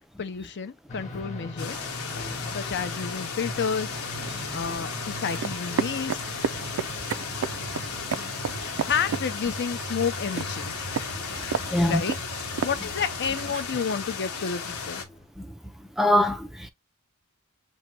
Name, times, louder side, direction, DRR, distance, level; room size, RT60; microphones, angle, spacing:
voice 1, 0.0-1.8 2.5-3.9 4.5-6.2 8.9-10.7 11.8-12.2 12.6-15.0, left 6 dB, 55° left, 0.6 m, -30 dB
sound 1, 0.9-15.3, equal, 30° left, 1.1 m, -41 dB
sound 2, 1.6-15.0, left 5 dB, 70° left, 0.9 m, -35 dB
sound 3, 3.8-13.6, right 6 dB, 65° right, 0.4 m, -34 dB
voice 2, 11.3-12.0 15.4-15.5 16.0-16.7, left 1 dB, ahead, 0.4 m, -24 dB
6.3 x 2.7 x 2.8 m
head